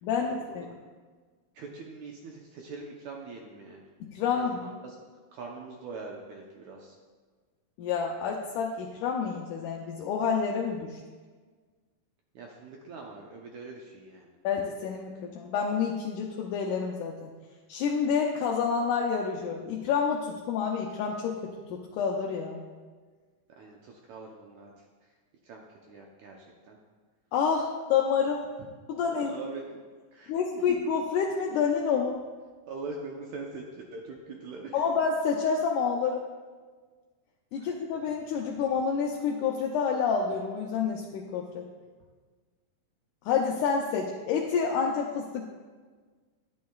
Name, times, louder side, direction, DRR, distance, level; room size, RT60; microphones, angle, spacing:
voice 1, 0.0-0.7 4.0-4.7 7.8-11.0 14.4-17.3 17.7-22.6 27.3-28.5 28.9-29.4 30.3-32.2 34.7-36.2 37.5-41.6 43.2-45.5, left 6 dB, 80° left, 0 dB, 1.8 m, -28 dB
voice 2, 1.5-3.8 4.3-5.0 5.3-6.9 12.3-14.3 23.6-24.7 25.4-26.8 29.1-29.8 30.1-30.7 32.7-34.8 37.6-37.7, right 3 dB, 75° right, -1 dB, 1.7 m, -43 dB
11.5 x 10.0 x 2.3 m, 1.5 s
omnidirectional pair, 4.2 m